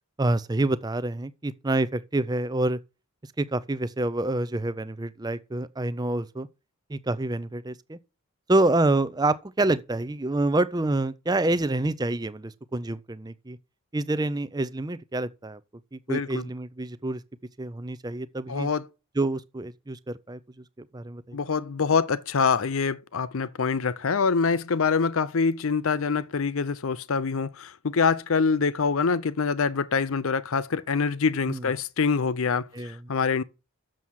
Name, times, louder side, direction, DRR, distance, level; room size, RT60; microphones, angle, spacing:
voice 1, 0.2-2.8 3.4-6.5 6.9-8.0 8.5-13.6 13.9-15.6 15.9-17.2 17.6-18.7 19.2-20.4 20.9-21.4 31.5-31.6 32.7-33.0, right 2 dB, 15° right, 0.5 m, -27 dB
voice 2, 16.1-16.5 18.5-18.9 21.3-33.4, left 5 dB, 65° left, 0.6 m, -25 dB
7.5 x 7.1 x 6.3 m
head